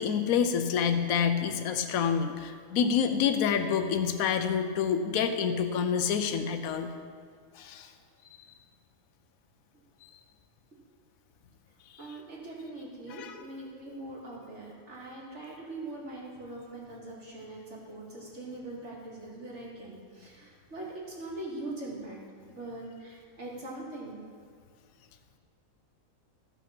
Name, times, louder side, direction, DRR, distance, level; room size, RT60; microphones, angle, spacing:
voice 1, 0.0-6.9 7.6-7.9 13.1-13.3, left 7 dB, 80° left, 7 dB, 1.1 m, -27 dB
voice 2, 12.0-22.2 22.5-24.2, right 2 dB, 55° right, -4 dB, 2.6 m, -42 dB
14.0 x 5.8 x 5.8 m, 2.1 s
omnidirectional pair, 1.4 m